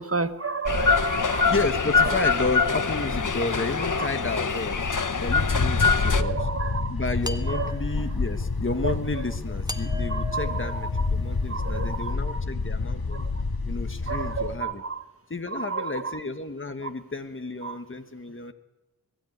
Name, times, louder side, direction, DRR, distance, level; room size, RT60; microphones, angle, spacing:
voice 1, 0.0-1.5 1.9-2.3 3.9-4.1 5.5-5.6 6.1-6.9 7.5-7.7 8.8-9.3 10.1-11.1 11.5-12.4 13.1-13.4 14.0-15.1 15.5-16.2 16.8-16.9 17.6-17.8, right 4 dB, 40° right, 11 dB, 1.2 m, -32 dB
sound 1, 0.7-6.2, left 5 dB, 55° left, 1.1 m, -24 dB
voice 2, 1.5-4.9 5.2-6.4 6.9-13.2 13.6-14.8 15.3-18.5, left 3 dB, 35° left, 7 dB, 1.4 m, -32 dB
sound 2, 5.3-14.6, left 3 dB, 75° left, 1.7 m, -28 dB
sound 3, 7.2-8.3 9.7-11.5, left 1 dB, 10° right, 1.4 m, -39 dB
22.0 x 13.0 x 9.3 m, 1.1 s
wide cardioid pair, 45°, 37 cm